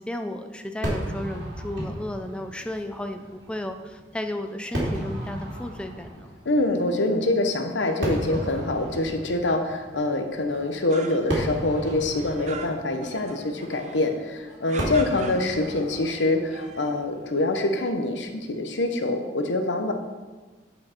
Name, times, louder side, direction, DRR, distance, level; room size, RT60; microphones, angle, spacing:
voice 1, 0.0-6.3, left 1 dB, 5° left, 6 dB, 0.4 m, -33 dB
Fireworks, 0.8-18.2, right 1 dB, 90° right, 2.4 m, -35 dB
voice 2, 6.4-19.9, left 2 dB, 85° left, 6 dB, 0.9 m, -25 dB
sound 1, 10.5-11.6 11.8-14.2 14.7-16.0 16.4-17.0, right 5 dB, 40° right, 0.7 m, -42 dB
8.3 x 5.2 x 4.4 m, 1.3 s
head